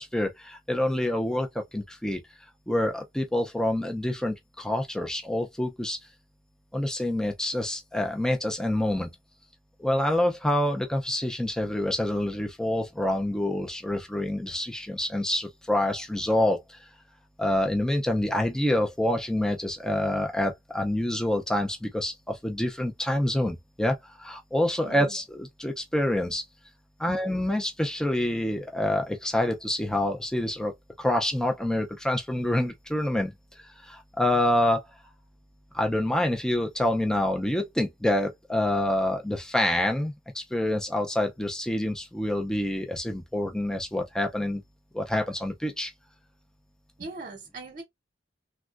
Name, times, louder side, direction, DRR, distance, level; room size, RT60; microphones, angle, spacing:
voice 1, 0.0-2.2 2.7-6.0 6.7-9.1 9.8-16.8 17.4-26.4 27.0-30.7 31.0-34.8 35.7-44.6 44.9-45.9, left 1 dB, 5° left, 0.4 m, -27 dB
voice 2, 24.8-25.1 27.1-27.2 47.0-47.8, right 2 dB, 45° right, 0.8 m, -40 dB
3.5 x 2.1 x 2.4 m
head